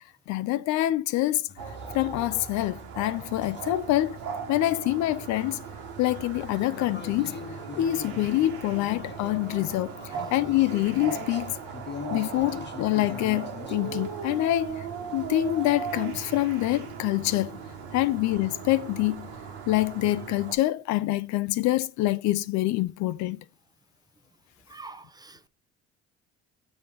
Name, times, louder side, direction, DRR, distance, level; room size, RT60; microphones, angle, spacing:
voice 1, 0.3-1.4 1.9-4.2 4.5-5.6 6.0-7.4 7.7-11.6 12.1-14.9 15.1-17.6 17.9-19.4 19.7-23.4, left 15 dB, 70° left, 0.6 m, -26 dB
sound 1, 1.5-1.9 3.4-3.8 6.0-14.7 15.2-15.7, left 6 dB, 40° left, 1.0 m, -42 dB
sound 2, 1.6-20.5, right 6 dB, 90° right, 1.6 m, -38 dB
voice 2, 24.7-25.5, right 3 dB, 15° right, 0.7 m, -45 dB
7.1 x 3.8 x 5.1 m
supercardioid pair, 85°, 29 cm